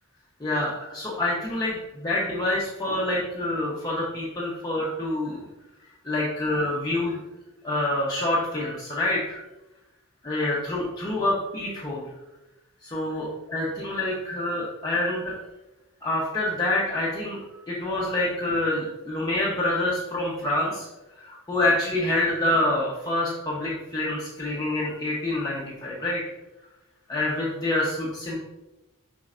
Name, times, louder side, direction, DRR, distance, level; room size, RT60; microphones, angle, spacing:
voice 1, 0.4-5.4 6.0-7.2 7.6-9.4 10.2-12.1 12.8-15.4 16.0-20.9 21.2-26.2 27.1-28.3, left 1 dB, 20° left, -6 dB, 0.9 m, -27 dB
7.6 x 5.3 x 2.5 m, 1.0 s
head